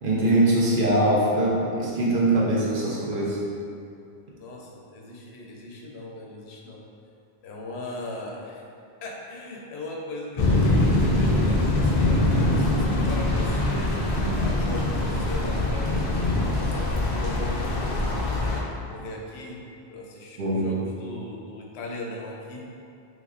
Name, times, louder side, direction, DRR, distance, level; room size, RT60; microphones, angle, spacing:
voice 1, 0.0-3.4 20.4-20.6, right 1 dB, 60° right, -5 dB, 0.8 m, -22 dB
voice 2, 4.3-6.8 7.4-8.6 9.0-18.1 18.9-19.6 19.9-22.6, left 2 dB, 80° left, -1 dB, 0.8 m, -38 dB
sound 1, 10.4-18.6, left 2 dB, 50° left, 0.4 m, -23 dB
3.9 x 3.1 x 2.5 m, 2.5 s
omnidirectional pair, 1.1 m